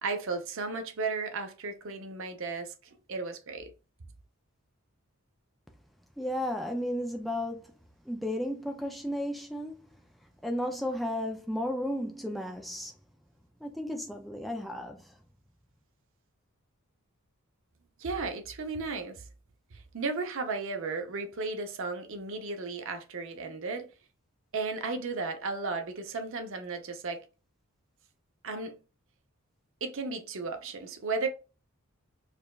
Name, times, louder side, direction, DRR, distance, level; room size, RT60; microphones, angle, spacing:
voice 1, 0.0-2.7 3.1-3.7 18.0-19.2 19.7-23.9 24.5-27.2 28.4-28.8 29.8-31.3, right 4 dB, 65° right, 0.6 m, -34 dB
voice 2, 6.2-7.6 8.1-9.8 10.4-12.9 13.6-15.1, left 1 dB, ahead, 0.3 m, -33 dB
4.9 x 2.3 x 2.3 m
head